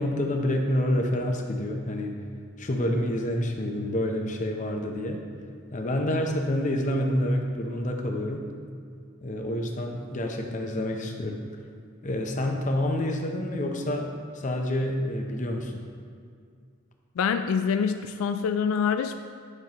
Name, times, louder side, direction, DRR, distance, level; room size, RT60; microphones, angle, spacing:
voice 1, 0.0-2.1 2.6-5.2 5.7-8.5 9.2-11.4 12.0-15.9, left 1 dB, 35° left, 2 dB, 0.7 m, -28 dB
voice 2, 17.2-19.2, left 6 dB, 80° left, 8 dB, 0.3 m, -25 dB
9.5 x 6.6 x 3.1 m, 2.2 s
head